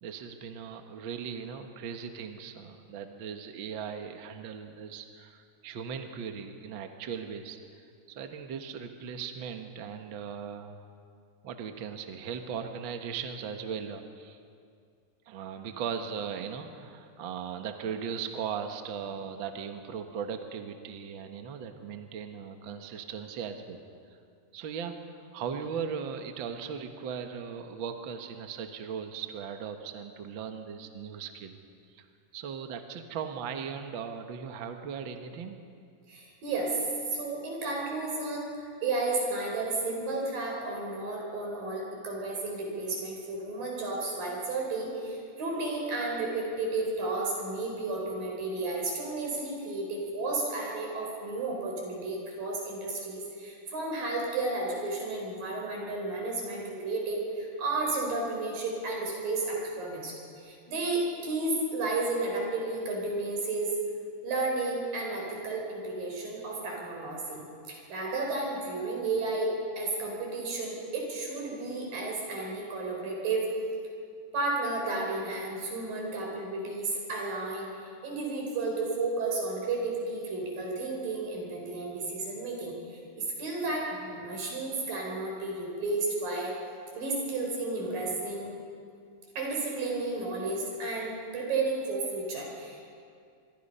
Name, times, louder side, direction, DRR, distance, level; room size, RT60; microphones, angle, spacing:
voice 1, 0.0-7.6 8.1-10.8 11.4-14.4 15.3-23.8 24.5-31.5 31.9-32.0 32.3-35.6, right 7 dB, 55° right, 5 dB, 1.4 m, -38 dB
voice 2, 36.1-36.8 37.1-63.7 64.2-73.5 74.3-82.8 83.2-86.5 87.0-88.5 89.4-92.9, right 2 dB, 80° right, -1 dB, 6.4 m, -32 dB
25.5 x 22.5 x 5.6 m, 2.3 s
omnidirectional pair, 4.0 m